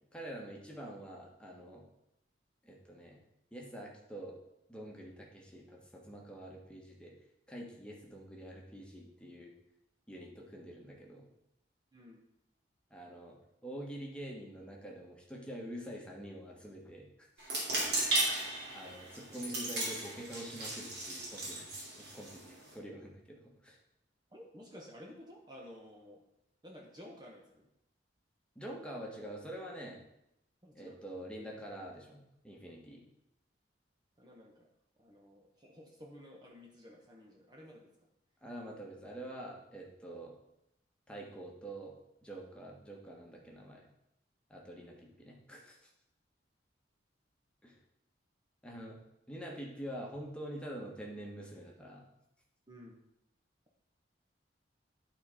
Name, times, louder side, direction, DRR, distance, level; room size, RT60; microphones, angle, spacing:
voice 1, 0.1-1.8 2.6-3.2 3.5-4.4 4.7-7.1 7.5-9.5 10.1-11.3 12.9-13.4 13.6-17.3 18.7-23.8 28.5-30.0 30.7-33.0 38.4-40.3 41.1-41.9 42.2-43.8 44.5-45.9 47.6-47.8 48.6-49.0 49.3-52.0, right 1 dB, 5° left, -2 dB, 1.4 m, -46 dB
sound 1, 17.4-22.7, right 1 dB, 60° right, 3.0 m, -36 dB
voice 2, 24.3-26.2 26.6-27.7 30.6-31.0 34.2-34.7 35.0-37.9 52.7-53.0, equal, 25° right, -1 dB, 1.0 m, -53 dB
11.5 x 4.4 x 5.0 m, 0.83 s
head